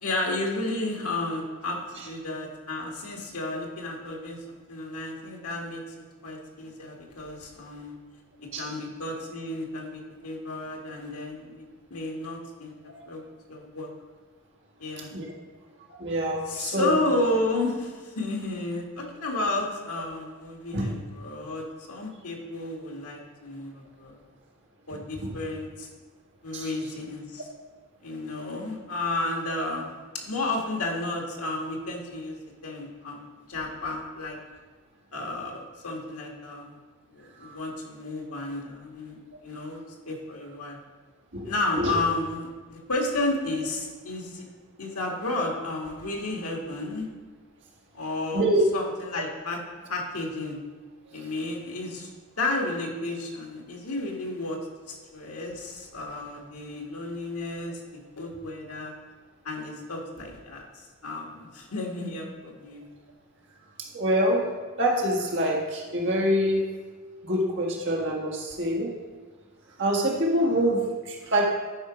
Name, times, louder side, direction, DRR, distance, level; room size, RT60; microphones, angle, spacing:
voice 1, 0.0-1.8 2.0-5.8 6.2-7.9 8.4-11.6 11.9-12.7 13.1-13.9 14.8-15.1 16.5-24.2 24.9-25.9 26.4-27.5 28.0-34.4 35.1-36.8 37.1-40.8 41.4-44.5 44.8-47.1 47.9-48.4 48.7-49.6 49.9-50.6 51.1-52.1 52.4-54.6 54.9-57.8 58.2-58.9 59.4-60.7 61.0-62.9, left 2 dB, 80° left, 0 dB, 1.7 m, -32 dB
voice 2, 15.9-16.9 20.7-20.8 25.2-25.3 26.5-26.6 37.4-37.6 41.3-41.5 41.8-41.9 48.3-48.6 63.9-64.5 64.8-66.6 67.2-69.0 69.8-71.5, right 1 dB, 55° right, -1 dB, 1.8 m, -25 dB
11.0 x 4.7 x 5.0 m, 1.4 s
head